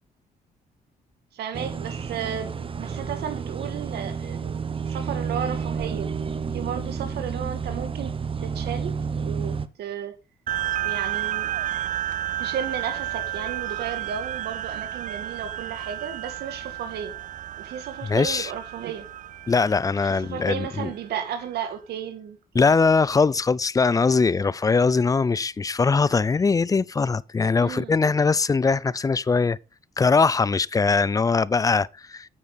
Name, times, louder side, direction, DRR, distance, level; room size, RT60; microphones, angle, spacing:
voice 1, 1.3-6.1 6.5-8.1 8.4-10.2 10.8-11.5 12.4-17.1 17.6-19.1 20.0-22.7 27.6-28.0, right 8 dB, 85° right, 2.4 m, -34 dB
sound 1, 1.5-9.7, right 6 dB, 35° right, 0.9 m, -30 dB
sound 2, 10.5-21.3, right 12 dB, 50° right, 0.5 m, -32 dB
voice 2, 18.0-18.5 19.5-20.9 22.5-29.6 30.0-32.3, left 4 dB, 20° left, 0.4 m, -21 dB
8.8 x 8.7 x 4.0 m
cardioid pair, 95°, 16 cm